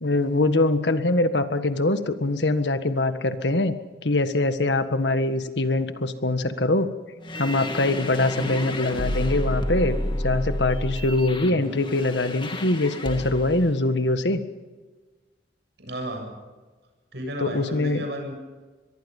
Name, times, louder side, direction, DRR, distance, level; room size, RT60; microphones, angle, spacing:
voice 1, 0.0-3.7 4.0-6.9 7.4-10.0 10.2-14.4 17.4-18.0, left 2 dB, 85° left, 10 dB, 1.6 m, -23 dB
sound 1, 7.2-13.6, left 1 dB, 30° left, 2.4 m, -30 dB
voice 2, 8.3-8.8 11.4-11.7 15.8-16.3 17.1-18.4, equal, 70° right, 3 dB, 7.8 m, -33 dB
24.5 x 22.0 x 5.5 m, 1.3 s
head